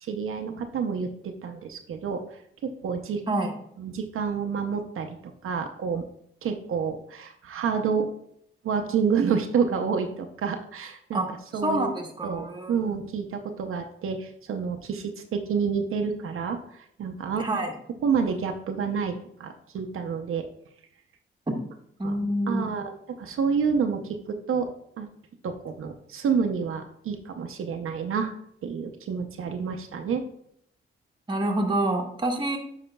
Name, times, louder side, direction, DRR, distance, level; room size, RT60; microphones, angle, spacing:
voice 1, 0.0-3.2 3.8-6.1 6.4-8.1 8.6-11.9 12.2-17.6 18.0-20.5 22.0-22.2 22.5-24.7 25.0-25.1 25.4-28.3 28.6-30.2, right 6 dB, 80° right, 5 dB, 0.6 m, -29 dB
voice 2, 11.6-12.8 17.4-17.7 21.5-21.6 22.0-22.6 31.3-32.6, right 1 dB, 20° right, 1 dB, 1.1 m, -27 dB
9.2 x 4.9 x 2.2 m, 0.70 s
cardioid pair, 95°, 21 cm